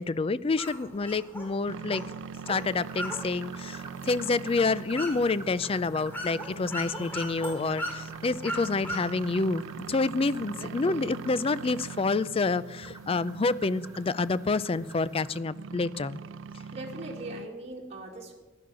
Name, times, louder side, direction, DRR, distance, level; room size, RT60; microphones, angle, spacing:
voice 1, 0.0-2.0 2.5-16.2, left 3 dB, 30° left, 18 dB, 0.4 m, -28 dB
sound 1, 0.6-9.5, equal, 10° left, 2.5 m, -40 dB
sound 2, 1.7-17.5, right 6 dB, 75° right, 0.3 m, -42 dB
sound 3, 2.5-15.4, right 2 dB, 20° right, 1.0 m, -50 dB
voice 2, 10.6-11.3 16.7-18.3, right 1 dB, 35° right, -1 dB, 2.0 m, -41 dB
15.0 x 11.0 x 6.2 m, 1.2 s
head